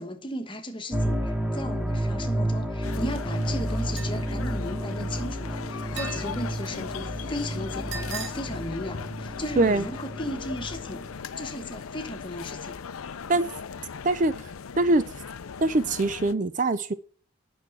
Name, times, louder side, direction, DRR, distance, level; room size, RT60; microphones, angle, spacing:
voice 1, 0.0-12.8, left 1 dB, 25° left, 1.2 m, -36 dB
sound 1, 0.9-11.1, right 1 dB, 5° right, 1.0 m, -31 dB
sound 2, 2.8-16.3, left 6 dB, 85° left, 0.5 m, -39 dB
sound 3, 4.0-4.3 6.0-6.5 7.9-8.3, right 5 dB, 65° right, 2.1 m, -37 dB
voice 2, 15.6-16.9, right 2 dB, 35° right, 0.5 m, -22 dB
9.3 x 6.2 x 7.6 m
head